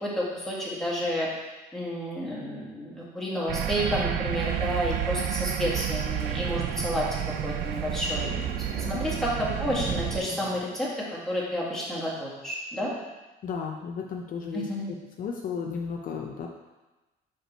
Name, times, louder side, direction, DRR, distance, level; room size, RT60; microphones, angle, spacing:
voice 1, 0.0-1.3 1.7-7.1 7.4-8.3 8.9-12.9 14.5-14.9, equal, ahead, -6 dB, 1.9 m, -30 dB
sound 1, 3.5-10.2, right 11 dB, 75° right, 0.4 m, -30 dB
Thunder / Rain, 4.3-10.6, right 2 dB, 60° right, 1.9 m, -41 dB
voice 2, 13.4-14.7 15.2-16.7, left 6 dB, 55° left, 1 dB, 0.6 m, -34 dB
5.1 x 4.8 x 4.4 m, 1.1 s
cardioid pair, 110°, 17 cm